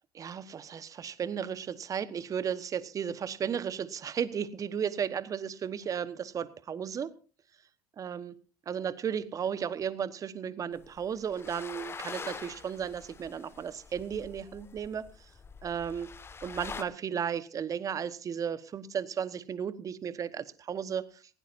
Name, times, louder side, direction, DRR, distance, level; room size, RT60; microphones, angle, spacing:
voice 1, 0.1-7.1 8.0-8.4 8.7-15.1 15.6-16.1 16.4-21.2, right 7 dB, 35° right, 16 dB, 1.2 m, -34 dB
sound 1, 10.8-16.8, left 5 dB, 25° left, 1.5 m, -45 dB
19.5 x 17.0 x 2.6 m, 0.37 s
hypercardioid pair, 70°, 10 cm